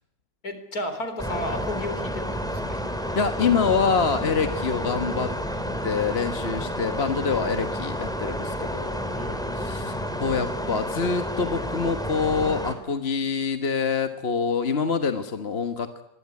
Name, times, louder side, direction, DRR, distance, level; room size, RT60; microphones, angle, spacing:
voice 1, 0.4-2.9 9.1-9.8, left 1 dB, 55° left, 9 dB, 4.3 m, -34 dB
sound 1, 1.2-12.7, equal, ahead, 3.4 m, -30 dB
voice 2, 3.1-5.3 5.8-9.0 9.5-16.0, left 5 dB, 35° left, 8 dB, 1.5 m, -26 dB
25.0 x 21.5 x 9.7 m, 0.84 s
omnidirectional pair, 2.0 m